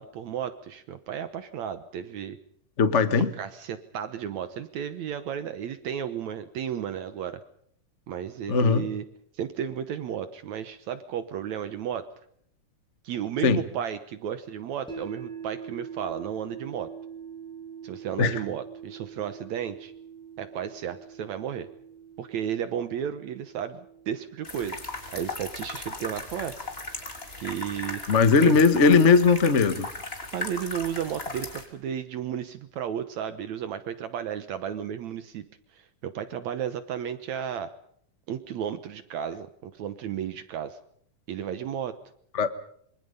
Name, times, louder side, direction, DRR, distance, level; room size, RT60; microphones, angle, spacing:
voice 1, 0.0-2.4 3.4-7.4 8.1-9.0 9.4-12.0 13.0-16.9 17.8-19.9 20.4-21.7 22.2-23.8 24.1-24.8 25.1-26.7 27.4-28.0 28.4-28.5 30.3-35.5 35.7-37.7 38.3-40.8 41.3-42.0, right 9 dB, 65° right, 11 dB, 2.2 m, -33 dB
voice 2, 2.8-3.3 8.5-8.9 13.4-13.6 18.2-18.4 28.1-29.9 42.3-42.5, left 4 dB, 45° left, 10 dB, 0.9 m, -19 dB
sound 1, 14.9-27.0, right 7 dB, ahead, 6.1 m, -44 dB
sound 2, 24.4-31.7, left 2 dB, 20° left, 3.3 m, -37 dB
26.0 x 24.0 x 5.5 m, 0.65 s
omnidirectional pair, 3.6 m